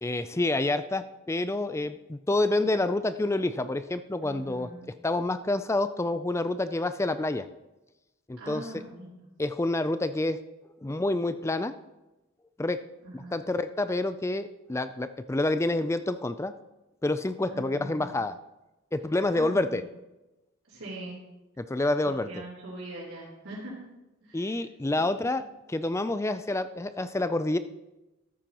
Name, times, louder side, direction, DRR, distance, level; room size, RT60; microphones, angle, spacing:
voice 1, 0.0-4.7 5.0-7.5 8.3-8.6 9.4-10.4 10.8-11.7 12.6-12.8 13.1-16.5 17.0-18.3 18.9-19.8 21.6-22.3 24.3-25.4 25.7-27.6, left 2 dB, 15° left, 12 dB, 0.3 m, -28 dB
voice 2, 4.2-4.9 8.4-9.2 13.0-13.4 17.5-18.2 19.3-19.9 20.7-21.2 22.0-23.8 24.2-24.6 24.9-25.5, right 1 dB, 80° right, -9 dB, 3.9 m, -42 dB
13.5 x 9.1 x 3.0 m, 1.0 s
head